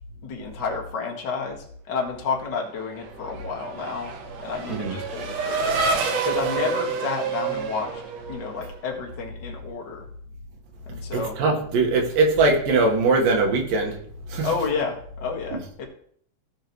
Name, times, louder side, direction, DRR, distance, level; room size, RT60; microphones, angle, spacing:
voice 1, 0.2-4.1 4.4-5.8 6.2-8.0 8.3-10.0 10.9-11.4 14.4-15.8, left 5 dB, 40° left, 0 dB, 1.9 m, -30 dB
Race car auto racing / Accelerating revving vroom, 2.8-8.9, right 4 dB, 65° right, 2.0 m, -28 dB
voice 2, 11.4-13.9 14.3-14.5 15.5-15.6, right 3 dB, 85° right, 1 dB, 3.2 m, -21 dB
16.0 x 6.5 x 3.1 m, 0.62 s
omnidirectional pair, 3.8 m